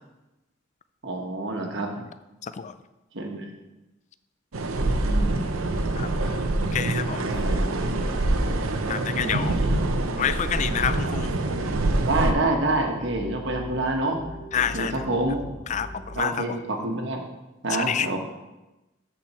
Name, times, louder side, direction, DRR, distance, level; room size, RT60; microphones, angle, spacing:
voice 1, 1.0-1.9 3.1-3.5 5.0-5.6 7.2-8.1 9.1-9.2 9.5-9.9 12.1-14.2 14.5-15.5 16.2-17.2 17.6-18.2, right 2 dB, 60° right, 2 dB, 1.3 m, -27 dB
voice 2, 2.4-2.7 6.0-6.3 6.7-7.3 8.9-9.6 10.2-11.3 14.5-15.1 15.7-16.4 17.7-18.1, left 8 dB, 35° left, 12 dB, 0.3 m, -28 dB
sound 1, 4.5-12.3, right 2 dB, 85° right, 0.7 m, -25 dB
sound 2, 7.4-16.2, left 1 dB, 70° left, 1.6 m, -41 dB
13.5 x 4.5 x 4.2 m, 1.0 s
head